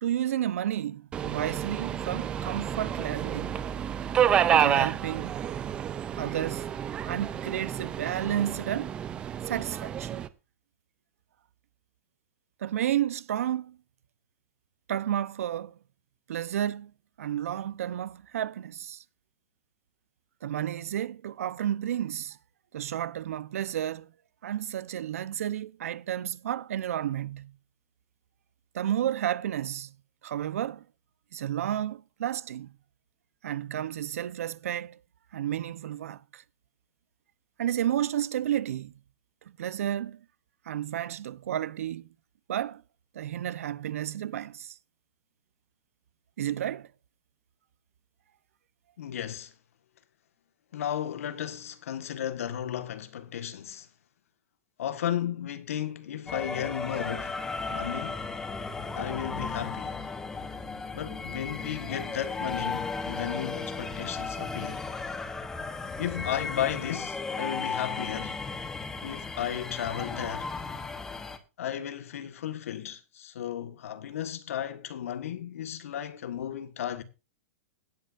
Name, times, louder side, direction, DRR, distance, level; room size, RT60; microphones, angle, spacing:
voice 1, 0.0-3.6 4.5-5.7 6.1-6.7 7.0-9.0 9.4-10.2 12.6-13.8 14.9-15.8 16.3-16.9 17.2-19.0 20.4-22.4 22.7-24.1 24.4-27.5 28.7-29.9 30.2-30.8 31.3-32.7 33.4-35.0 35.3-36.4 37.6-38.9 39.6-40.2 40.7-42.1 42.5-42.8 43.1-44.8 46.4-46.9, right 11 dB, 80° right, 0.8 m, -31 dB
Subway metro underground, 1.1-10.3, right 9 dB, 15° right, 0.5 m, -29 dB
voice 2, 49.0-49.5 50.7-53.9 54.8-57.4 57.7-58.3 58.9-60.0 60.9-64.9 66.0-68.4 69.0-70.5 71.6-77.0, left 10 dB, 75° left, 1.6 m, -34 dB
sound 1, 56.3-71.4, left 4 dB, 5° left, 0.9 m, -35 dB
17.0 x 9.2 x 2.6 m
supercardioid pair, 175°, 8 cm